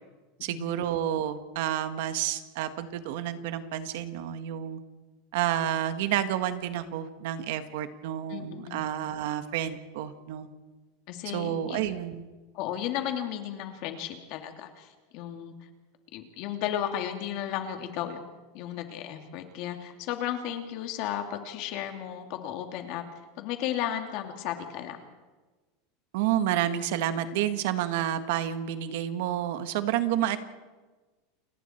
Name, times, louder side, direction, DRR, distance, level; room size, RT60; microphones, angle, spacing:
voice 1, 0.4-4.8 5.3-10.5 11.3-12.2 26.1-30.4, right 11 dB, 70° right, 10 dB, 1.7 m, -30 dB
voice 2, 8.3-8.8 11.1-11.8 12.5-15.5 16.1-18.2 18.5-23.0 23.4-25.0, left 10 dB, 50° left, 5 dB, 2.8 m, -34 dB
29.0 x 20.0 x 4.6 m, 1.3 s
supercardioid pair, 145°, 0 cm